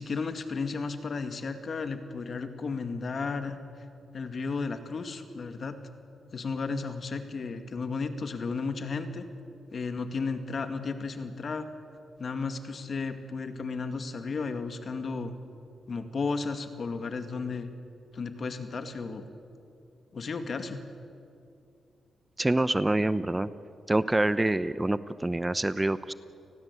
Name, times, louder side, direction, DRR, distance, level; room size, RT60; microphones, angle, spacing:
voice 1, 0.0-3.6 4.1-5.8 6.3-9.3 9.7-11.7 12.2-15.4 15.9-17.7 18.1-19.3 20.1-20.8, left 4 dB, 50° left, 8 dB, 2.1 m, -33 dB
voice 2, 22.4-23.5 23.9-26.1, right 2 dB, 15° right, 14 dB, 0.7 m, -26 dB
29.5 x 19.5 x 8.4 m, 2.5 s
cardioid pair, 80°, 0 cm